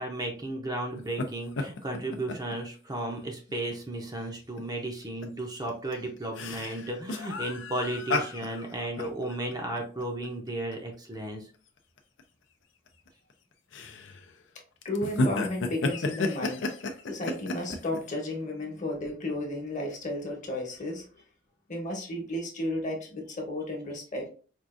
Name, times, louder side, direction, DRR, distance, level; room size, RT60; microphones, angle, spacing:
voice 1, 0.0-11.5, right 1 dB, 20° right, 1 dB, 0.6 m, -34 dB
sound 1, 1.0-1.3 1.6-2.5 2.9-3.0 3.5-3.7 4.6-4.7 5.0-5.3 5.7-10.7 11.1-11.2 12.0-12.2 12.9-13.3 13.7-14.3 14.8-18.0, left 2 dB, 75° left, 0.5 m, -32 dB
voice 2, 14.8-16.7 17.1-21.0 21.7-24.3, left 1 dB, 40° left, 1 dB, 1.0 m, -33 dB
4.5 x 2.4 x 2.4 m, 0.39 s
head